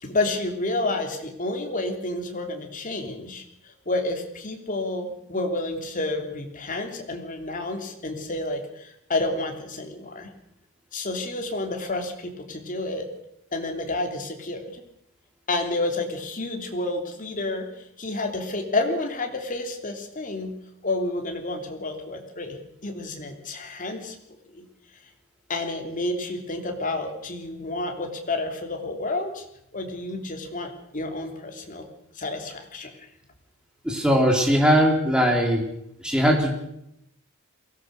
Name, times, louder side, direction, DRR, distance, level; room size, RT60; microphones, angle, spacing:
voice 1, 0.0-10.3 10.9-13.1 13.5-14.8 15.5-20.5 20.8-24.1 24.5-24.6 25.5-29.4 29.7-31.9 32.1-32.9, left 2 dB, 35° left, 4 dB, 3.2 m, -30 dB
voice 2, 33.9-35.7 36.0-36.5, equal, 5° right, 1 dB, 3.7 m, -20 dB
22.5 x 17.5 x 6.7 m, 0.80 s
head